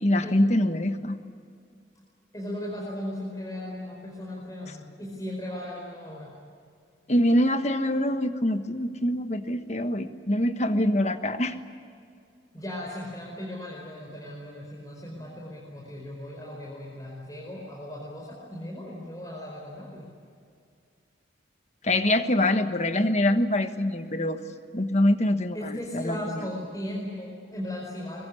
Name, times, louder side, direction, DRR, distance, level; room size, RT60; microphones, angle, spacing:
voice 1, 0.0-1.2 7.1-11.5 21.8-24.4 24.7-26.4, left 1 dB, 35° left, 8 dB, 1.4 m, -24 dB
voice 2, 2.3-6.3 12.5-20.1 25.5-28.3, left 1 dB, 20° left, -4 dB, 4.9 m, -37 dB
24.0 x 22.0 x 9.8 m, 2.3 s
head